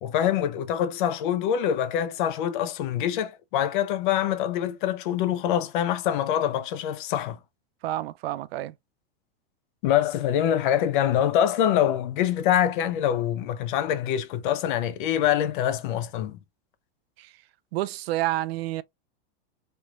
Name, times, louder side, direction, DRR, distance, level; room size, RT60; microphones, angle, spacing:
voice 1, 0.0-7.4 9.8-16.4, left 10 dB, 55° left, 0.6 m, -25 dB
voice 2, 7.8-8.7 17.2-17.3 17.7-18.8, right 15 dB, 85° right, 0.5 m, -29 dB
3.3 x 3.0 x 2.4 m
supercardioid pair, 170°, 30 cm